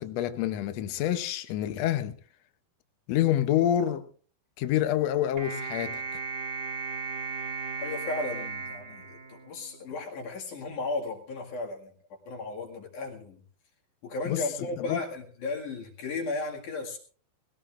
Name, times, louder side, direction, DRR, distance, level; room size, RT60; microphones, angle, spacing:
voice 1, 0.0-2.1 3.1-4.0 4.6-6.0 14.3-14.4 14.8-15.0, left 11 dB, 90° left, 1.4 m, -27 dB
sound 1, 5.4-9.9, right 4 dB, 45° right, 2.0 m, -36 dB
voice 2, 7.8-11.9 12.3-13.4 14.0-17.0, left 3 dB, 60° left, 3.3 m, -35 dB
20.5 x 17.5 x 2.5 m
omnidirectional pair, 4.2 m